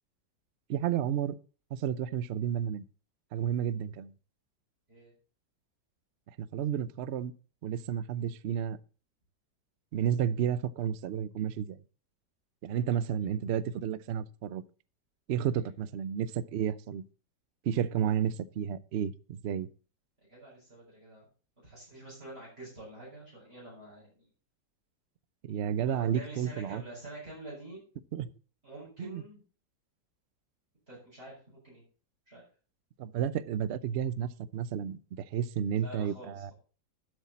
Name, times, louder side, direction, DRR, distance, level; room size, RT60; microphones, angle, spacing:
voice 1, 0.7-1.4 1.7-2.8 3.3-4.1 6.4-7.3 7.6-8.8 9.9-11.8 12.6-14.6 15.3-17.0 17.6-19.7 25.4-26.8 28.1-28.3 29.0-29.2 33.0-36.5, right 9 dB, 75° right, 0.6 m, -31 dB
voice 2, 20.3-21.3 21.6-24.3 25.8-27.8 28.6-29.4 30.9-31.8 32.3-32.5 35.8-36.5, right 2 dB, 35° right, 6.5 m, -47 dB
11.5 x 8.1 x 4.2 m
omnidirectional pair, 1.9 m